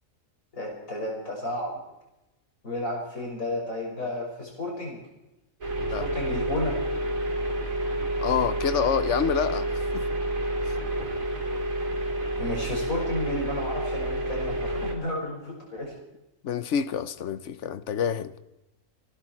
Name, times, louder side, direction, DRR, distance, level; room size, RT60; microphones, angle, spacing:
voice 1, 0.5-1.8 2.6-5.0 6.0-6.8 12.4-15.9, left 1 dB, 90° left, 6.3 m, -32 dB
sound 1, 5.6-14.9, right 1 dB, 85° right, 3.3 m, -29 dB
voice 2, 8.2-10.0 10.6-10.8 16.4-18.3, left 8 dB, 65° left, 1.1 m, -28 dB
26.5 x 11.5 x 4.6 m
omnidirectional pair, 1.4 m